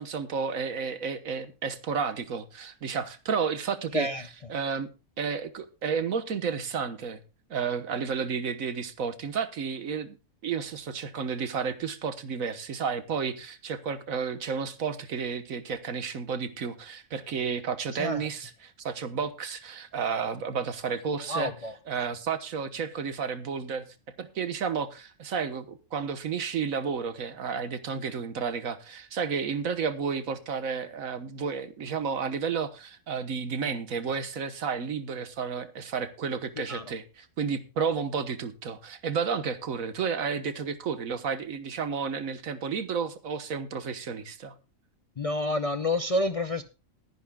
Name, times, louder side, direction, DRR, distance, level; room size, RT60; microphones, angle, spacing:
voice 1, 0.0-4.9 5.2-7.2 7.5-10.2 10.4-21.5 21.9-23.9 24.2-44.5, right 6 dB, 80° right, 1.6 m, -32 dB
voice 2, 21.3-21.7 36.7-36.8 45.2-46.6, left 1 dB, 40° left, 0.5 m, -28 dB
21.0 x 10.0 x 2.3 m
omnidirectional pair, 1.4 m